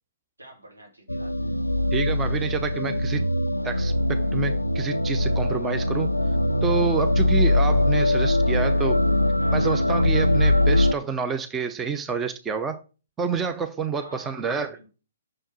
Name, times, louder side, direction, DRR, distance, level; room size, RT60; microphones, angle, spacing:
voice 1, 0.4-1.4 9.4-9.7 13.9-14.9, right 1 dB, 85° right, 3.0 m, -48 dB
sound 1, 1.1-10.9, left 1 dB, 90° left, 0.3 m, -22 dB
voice 2, 1.9-3.3 3.6-6.1 6.6-9.0 9.5-12.8 13.2-14.8, right 6 dB, 15° right, 0.6 m, -28 dB
6.3 x 4.5 x 5.9 m
figure-of-eight pair, 125°, 0 cm